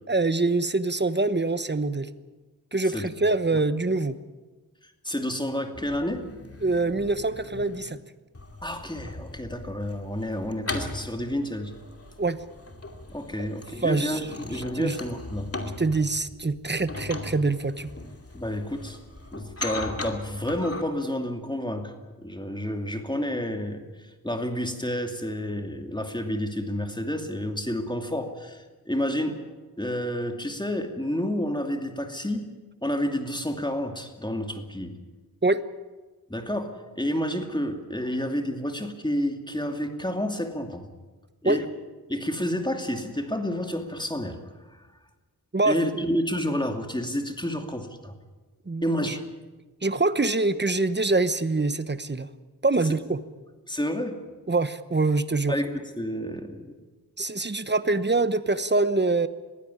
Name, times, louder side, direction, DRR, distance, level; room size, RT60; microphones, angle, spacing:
voice 1, 0.1-2.1 2.7-4.2 6.6-8.0 12.2-12.4 13.4-13.5 13.8-14.2 14.5-15.0 15.8-17.9 35.4-35.6 41.4-41.6 45.5-46.0 48.7-49.2 49.8-52.3 52.6-53.2 54.5-55.5 57.2-59.3, right 3 dB, 30° right, 13 dB, 1.1 m, -25 dB
voice 2, 5.0-6.3 8.6-11.7 13.1-15.5 18.3-19.0 19.3-21.9 22.2-23.8 24.2-29.4 29.8-32.4 32.8-34.9 36.3-40.9 41.4-41.6 42.1-44.4 44.7-44.8 45.7-48.1 48.8-49.2 52.8-52.9 53.7-54.1 55.5-56.7, equal, 10° left, 5 dB, 2.6 m, -30 dB
sound 1, 5.7-7.9 8.3-20.8, left 2 dB, 40° left, 2.6 m, -39 dB
21.5 x 15.5 x 9.8 m, 1.2 s
wide cardioid pair, 70°, 37 cm